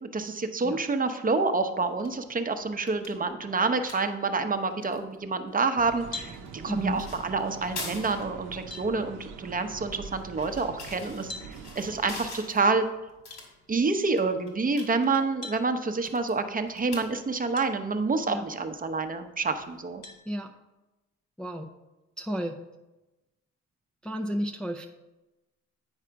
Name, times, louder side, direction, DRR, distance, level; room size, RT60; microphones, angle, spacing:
voice 1, 0.0-6.4 6.6-11.3 11.8-12.8 13.7-20.0, right 4 dB, 30° right, 7 dB, 0.8 m, -28 dB
sound 1, 1.8-20.2, left 3 dB, 65° left, 2.4 m, -47 dB
sound 2, 5.8-12.3, right 5 dB, 85° right, 0.7 m, -44 dB
sound 3, 6.1-6.4 8.0-8.1 8.7-8.9 11.3-11.5 13.3-13.5 15.4-15.6 17.5-17.7 18.3-18.4 20.0-20.2, left 3 dB, 50° left, 1.6 m, -40 dB
voice 2, 6.7-7.1 18.3-18.4 20.3-20.5 21.4-21.7 22.2-22.6 24.0-24.9, equal, 5° left, 2 dB, 0.5 m, -32 dB
8.9 x 4.8 x 4.6 m, 1.0 s
cardioid pair, 90°, 30 cm